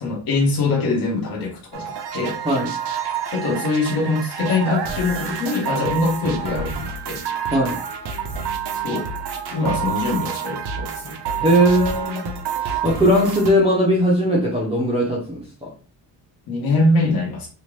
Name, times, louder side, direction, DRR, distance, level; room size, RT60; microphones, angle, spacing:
voice 1, 0.0-2.3 3.3-7.2 8.7-9.1 9.5-11.2 16.5-17.5, left 2 dB, 50° left, -1 dB, 1.1 m, -23 dB
sound 1, 1.7-13.5, right 7 dB, 60° right, 0.6 m, -28 dB
voice 2, 11.4-12.3 12.6-15.7, equal, 15° right, -5 dB, 0.5 m, -19 dB
2.9 x 2.4 x 3.2 m, 0.37 s
cardioid pair, 165°, 47 cm